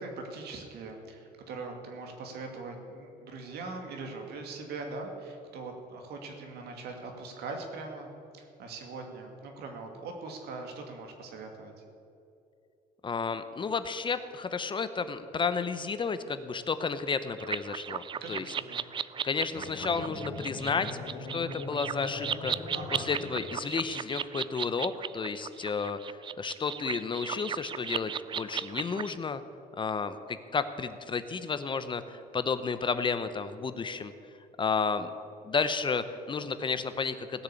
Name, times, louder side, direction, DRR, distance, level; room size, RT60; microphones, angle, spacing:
voice 1, 0.0-8.1 8.4-11.7 18.1-18.9 22.7-23.1, right 3 dB, 75° right, 3 dB, 2.4 m, -41 dB
voice 2, 13.0-18.5 19.2-20.9 21.3-22.5 22.9-29.4 29.8-34.1 34.6-35.1 35.4-37.4, left 5 dB, 30° left, 11 dB, 0.7 m, -32 dB
sound 1, 17.4-29.2, right 8 dB, 30° right, 0.3 m, -36 dB
sound 2, 19.5-23.8, left 3 dB, 70° left, 2.3 m, -41 dB
17.0 x 6.7 x 8.5 m, 2.7 s
cardioid pair, 110°, 17 cm